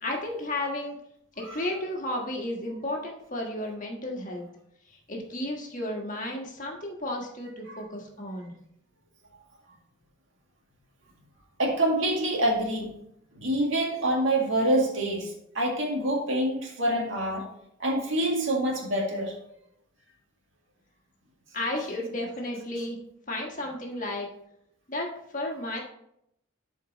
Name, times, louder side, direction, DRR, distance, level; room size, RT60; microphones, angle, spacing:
voice 1, 0.0-1.0 1.4-4.5 5.1-8.5 21.5-23.0 23.3-24.3 24.9-25.8, left 1 dB, 40° left, 0 dB, 1.4 m, -33 dB
voice 2, 11.6-12.9 13.4-17.5 17.8-19.4, right 1 dB, 70° right, -1 dB, 1.8 m, -26 dB
11.5 x 4.5 x 3.0 m, 0.76 s
head